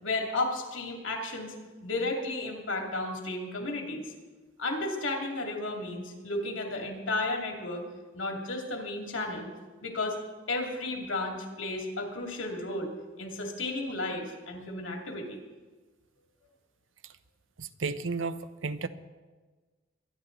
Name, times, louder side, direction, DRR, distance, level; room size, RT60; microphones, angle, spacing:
voice 1, 0.0-1.6 1.8-4.1 4.6-7.9 8.1-9.5 9.8-10.2 10.5-12.9 13.2-15.4, left 2 dB, 85° left, 2 dB, 2.7 m, -33 dB
voice 2, 17.6-18.9, right 4 dB, 85° right, 12 dB, 0.8 m, -33 dB
23.5 x 10.5 x 4.0 m, 1.3 s
head